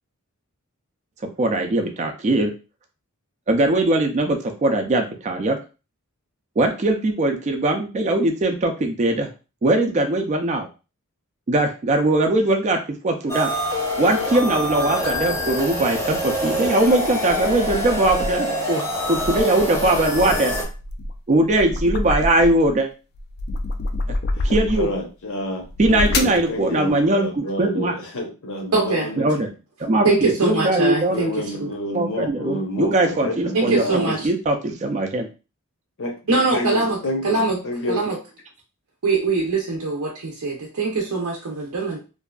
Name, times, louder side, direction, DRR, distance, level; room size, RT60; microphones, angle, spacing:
voice 1, 1.4-2.5 3.5-5.6 6.6-9.3 9.6-10.7 11.5-12.8 13.0-13.5 14.0-18.8 19.1-20.5 21.3-22.9 24.4-24.9 25.8-27.9 29.2-29.5 29.8-31.2 31.9-33.8 34.2-35.3, right 2 dB, 30° right, 3 dB, 0.4 m, -20 dB
sound 1, 13.3-20.6, equal, 15° left, 0.6 m, -25 dB
sound 2, 16.6-18.5 19.0-22.8 23.1-25.0 25.6-26.5, left 2 dB, 45° left, 0.3 m, -28 dB
voice 2, 24.3-29.3 31.1-34.2 36.0-38.1, left 1 dB, 65° left, 2 dB, 0.7 m, -29 dB
voice 3, 28.7-29.1 30.0-31.3 31.6-31.7 33.5-34.3 36.3-37.0 37.2-37.6 37.9-38.2 39.0-42.0, right 3 dB, 80° right, -2 dB, 0.6 m, -22 dB
2.6 x 2.3 x 2.2 m, 0.32 s
head